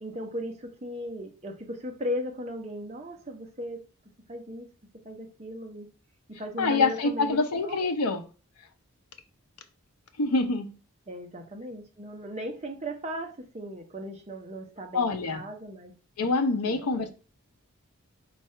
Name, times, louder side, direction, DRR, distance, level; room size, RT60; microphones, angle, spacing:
voice 1, 0.0-3.8 4.3-4.7 5.0-5.9 6.4-7.9 11.1-15.9 16.6-17.1, equal, 30° right, 0.7 m, -37 dB
voice 2, 6.6-8.2 10.2-10.7 14.9-15.4 16.2-17.1, left 3 dB, 90° left, 0.6 m, -26 dB
4.6 x 2.4 x 4.2 m
head